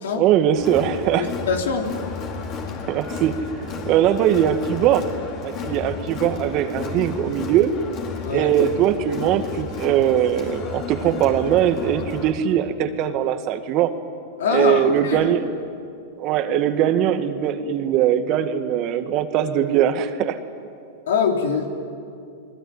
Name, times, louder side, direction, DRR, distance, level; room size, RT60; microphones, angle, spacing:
voice 1, 0.2-1.3 2.9-3.4 3.6-5.1 5.4-7.8 8.3-13.9 14.5-15.4 16.2-20.4, right 10 dB, 45° right, 9 dB, 1.8 m, -21 dB
Crowd, 0.6-12.3, left 5 dB, 40° left, 4.6 m, -33 dB
voice 2, 1.1-1.9 8.2-8.5 14.4-15.3 21.1-21.7, left 6 dB, 75° left, 3 dB, 3.4 m, -23 dB
29.0 x 20.5 x 9.5 m, 2.4 s
hypercardioid pair, 105°, 0 cm